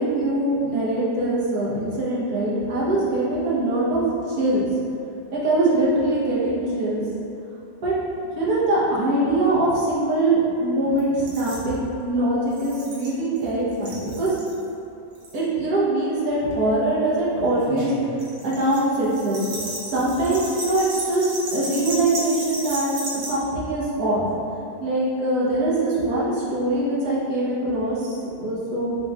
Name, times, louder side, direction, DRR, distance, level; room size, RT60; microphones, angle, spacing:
voice 1, 0.0-4.6 5.3-7.0 7.8-7.9 8.4-14.3 15.3-17.9 18.4-19.5 19.9-24.2 24.8-29.0, right 1 dB, 60° right, -8 dB, 1.3 m, -23 dB
sound 1, 11.0-11.1 11.3-11.6 12.5-13.4 13.7-14.5 15.1-15.4 16.3-16.5 17.6-23.3, right 1 dB, 80° right, 1.4 m, -33 dB
4.3 x 3.5 x 2.2 m, 2.7 s
omnidirectional pair, 1.9 m